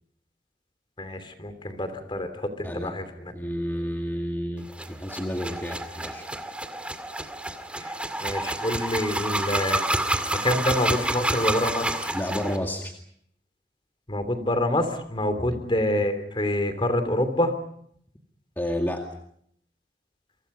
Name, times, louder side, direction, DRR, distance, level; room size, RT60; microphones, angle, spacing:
voice 1, 1.0-3.3 7.8-10.1 10.4-12.1 14.1-17.5, left 1 dB, 30° left, 9 dB, 3.0 m, -27 dB
voice 2, 2.6-2.9 3.3-6.3 12.1-12.9 15.4-15.6 18.6-19.1, equal, 10° left, 2 dB, 2.1 m, -30 dB
sound 1, 4.7-12.6, right 1 dB, 5° right, 2.1 m, -29 dB
29.0 x 24.5 x 5.5 m, 0.68 s
head